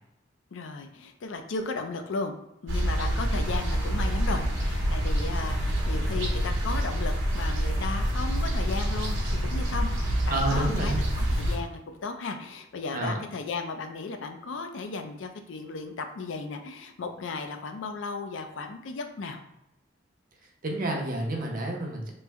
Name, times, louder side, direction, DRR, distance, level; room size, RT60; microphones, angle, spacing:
voice 1, 0.5-2.3 2.6-19.4, left 4 dB, 70° left, 6 dB, 0.4 m, -35 dB
sound 1, 2.7-11.6, equal, 75° right, 0.9 m, -27 dB
sound 2, 3.4-9.1, equal, ahead, 0.5 m, -47 dB
voice 2, 10.3-11.0 12.9-13.2 20.6-22.1, right 1 dB, 45° right, 1 dB, 0.6 m, -29 dB
3.1 x 2.1 x 3.4 m, 0.85 s
head